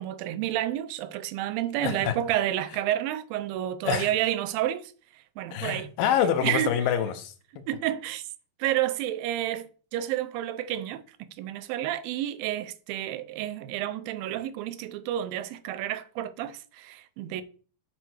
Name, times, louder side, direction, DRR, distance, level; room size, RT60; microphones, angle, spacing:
voice 1, 0.0-5.9 6.4-6.7 7.7-8.3 8.6-17.4, right 12 dB, 85° right, 2.4 m, -30 dB
voice 2, 1.8-2.2 3.8-4.1 5.5-7.3, left 9 dB, 80° left, 2.5 m, -26 dB
6.9 x 4.4 x 6.4 m
omnidirectional pair, 4.1 m